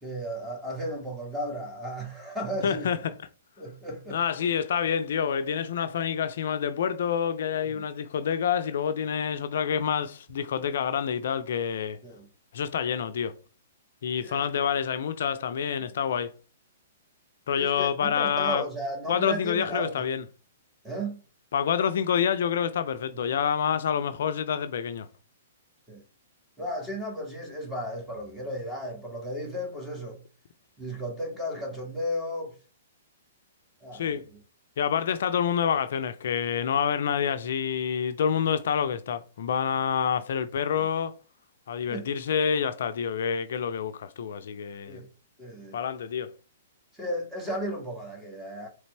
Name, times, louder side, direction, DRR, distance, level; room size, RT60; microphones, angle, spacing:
voice 1, 0.0-2.9 3.6-4.2 7.7-7.8 12.0-12.3 14.2-14.5 17.5-20.0 20.8-21.2 25.9-26.0 26.6-30.2 30.8-32.5 33.8-34.2 40.8-40.9 41.9-42.1 44.9-45.1 45.4-45.8 46.9-48.7, equal, 10° right, 1.8 m, -34 dB
voice 2, 2.6-3.1 4.1-12.0 12.5-13.4 14.0-16.3 17.5-18.6 19.1-20.2 21.5-25.1 33.9-34.2 34.8-41.1 41.7-45.0 45.7-46.3, left 8 dB, 65° left, 0.4 m, -27 dB
4.0 x 3.2 x 3.3 m
hypercardioid pair, 120°, 0 cm